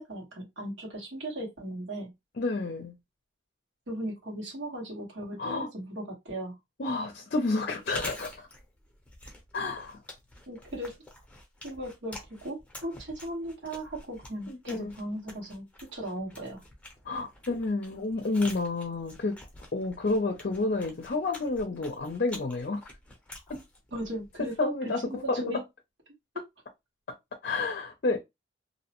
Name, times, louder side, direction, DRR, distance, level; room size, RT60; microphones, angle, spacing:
voice 1, 0.0-2.1 3.9-6.5 10.5-11.0 11.6-12.2 12.4-15.7 15.9-16.6 23.9-24.7 25.0-25.6, right 1 dB, 80° right, 1.4 m, -37 dB
voice 2, 2.3-2.9 5.4-5.7 6.8-8.5 9.5-10.0 14.5-14.9 17.0-19.4 19.7-22.8 23.5-23.6 24.4-25.6 27.1-27.2 27.4-28.2, left 3 dB, 55° left, 0.5 m, -30 dB
Chewing mastication, 7.7-24.6, left 1 dB, 5° left, 0.7 m, -47 dB
2.7 x 2.0 x 2.9 m
head